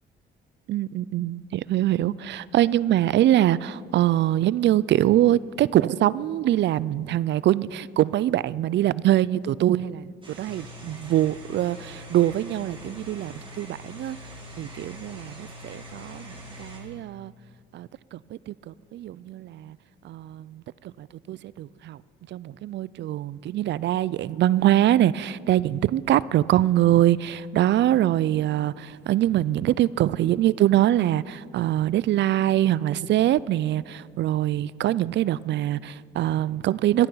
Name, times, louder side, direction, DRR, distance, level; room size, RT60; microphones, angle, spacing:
voice 1, 0.7-14.2 14.6-17.3 17.7-19.8 20.0-20.6 21.0-22.0 22.3-37.1, right 13 dB, 65° right, 0.4 m, -23 dB
sound 1, 10.2-16.8, equal, 25° right, 3.6 m, -43 dB
23.0 x 9.1 x 5.6 m
cardioid pair, 90°, 20 cm